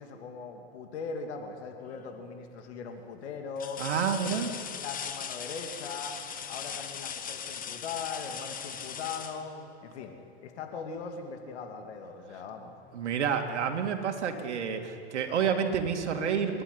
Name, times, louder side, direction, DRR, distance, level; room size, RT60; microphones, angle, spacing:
voice 1, 0.0-3.8 4.2-4.4 4.7-6.2 6.5-9.5 9.8-10.1 10.4-12.7, left 5 dB, 70° left, 4 dB, 2.8 m, -40 dB
sound 1, 1.8-2.3 2.8-2.9 3.6-10.2 12.0-12.2 12.6-13.7 15.0-15.1, left 8 dB, 25° left, 1.4 m, -40 dB
voice 2, 3.8-4.5 12.9-16.6, right 7 dB, 85° right, 4 dB, 2.5 m, -29 dB
28.5 x 11.5 x 9.9 m, 2.7 s
hypercardioid pair, 115°, 34 cm